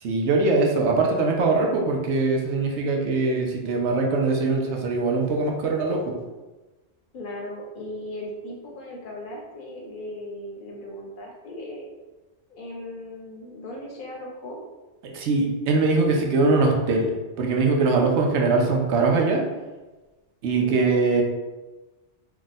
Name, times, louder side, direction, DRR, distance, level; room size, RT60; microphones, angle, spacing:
voice 1, 0.0-6.2 15.0-17.1 17.4-19.4 20.4-21.2, right 3 dB, 80° right, 1 dB, 0.9 m, -22 dB
voice 2, 7.1-11.9 12.5-14.6 20.6-21.0, left 1 dB, 55° left, -1 dB, 0.7 m, -37 dB
2.7 x 2.4 x 4.0 m, 1.2 s
omnidirectional pair, 1.2 m